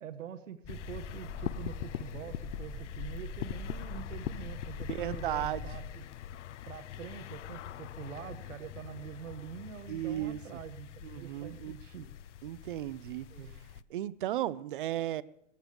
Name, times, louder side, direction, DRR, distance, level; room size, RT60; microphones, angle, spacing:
voice 1, 0.0-6.4 6.7-12.1 13.3-13.6, right 9 dB, 85° right, 1.0 m, -45 dB
sound 1, 0.6-5.8, left 3 dB, 20° left, 1.5 m, -42 dB
sound 2, 0.7-13.8, left 12 dB, 65° left, 0.5 m, -44 dB
voice 2, 4.8-5.7 9.9-10.6 11.0-11.8 12.4-13.3 13.9-15.2, right 13 dB, 45° right, 0.4 m, -35 dB
18.0 x 14.0 x 3.4 m
hypercardioid pair, 135°, 38 cm